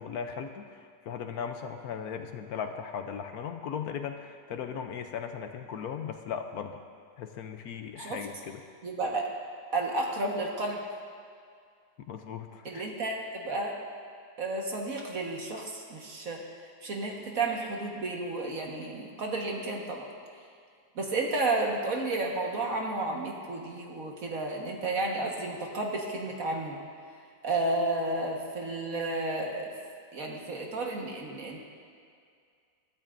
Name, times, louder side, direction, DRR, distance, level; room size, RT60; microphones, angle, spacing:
voice 1, 0.0-6.8 7.2-8.6 12.1-12.9, left 7 dB, 70° left, 6 dB, 1.1 m, -37 dB
voice 2, 8.8-9.3 9.7-10.8 12.7-13.8 14.4-16.4 16.8-20.1 21.0-26.8 27.4-29.7 30.1-31.6, right 2 dB, 55° right, 0 dB, 1.8 m, -32 dB
22.0 x 12.5 x 2.6 m, 2.2 s
omnidirectional pair, 1.8 m